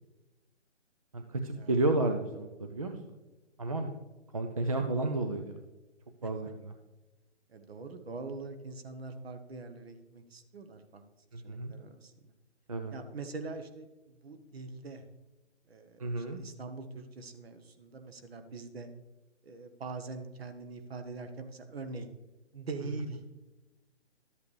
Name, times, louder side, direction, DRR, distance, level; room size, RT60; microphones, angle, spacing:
voice 1, 1.1-3.0 3.6-3.9 4.3-5.6 6.2-6.7 11.3-11.7 12.7-12.9 16.0-16.4, right 2 dB, 30° right, 6 dB, 0.5 m, -31 dB
voice 2, 7.5-11.0 11.4-12.1 12.9-15.0 15.7-18.9 19.4-22.1 22.5-23.2, right 3 dB, 55° right, 7 dB, 1.3 m, -43 dB
12.5 x 8.2 x 3.2 m, 1.1 s
hypercardioid pair, 160°, 36 cm